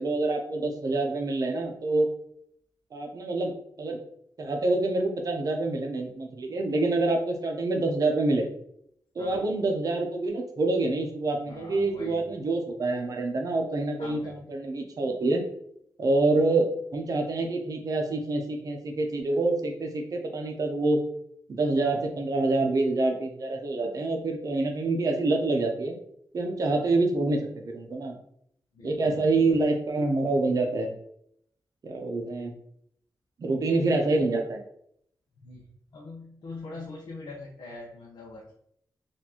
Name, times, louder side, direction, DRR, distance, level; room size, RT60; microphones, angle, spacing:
voice 1, 0.0-2.1 2.9-4.0 4.4-8.5 9.2-14.2 14.5-15.4 16.0-21.0 21.5-25.9 26.3-27.4 27.6-28.1 28.8-30.9 31.8-32.5 33.4-34.6, right 2 dB, 50° right, 3 dB, 0.7 m, -26 dB
voice 2, 11.5-12.2 14.0-14.9 28.7-29.6 35.4-38.5, left 3 dB, 75° left, -3 dB, 0.7 m, -43 dB
4.3 x 2.6 x 2.9 m, 0.70 s
wide cardioid pair, 145°, 8 cm